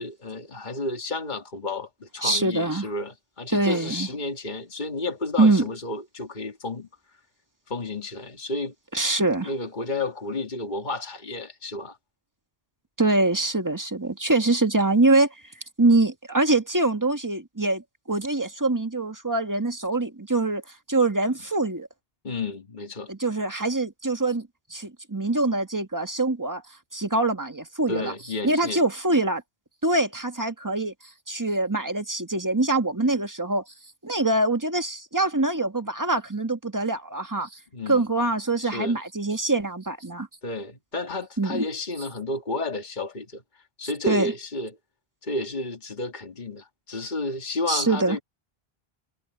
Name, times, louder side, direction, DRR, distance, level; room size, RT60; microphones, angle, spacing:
voice 1, 0.0-6.9 7.7-8.7 9.4-12.0 22.2-23.1 27.9-28.8 37.7-38.0 38.6-39.0 40.4-43.4 43.8-44.7 45.2-48.2, left 2 dB, 50° left, 2.2 m, -31 dB
voice 2, 2.2-2.9 3.5-4.1 5.4-5.6 8.9-9.5 13.0-15.3 15.8-20.6 20.9-21.9 23.1-26.6 26.9-28.1 28.4-29.4 29.8-30.9 31.3-33.6 34.0-37.5 37.9-40.3 41.4-41.6 44.1-44.3 47.7-48.2, right 2 dB, 20° right, 1.7 m, -24 dB
omnidirectional pair, 1.0 m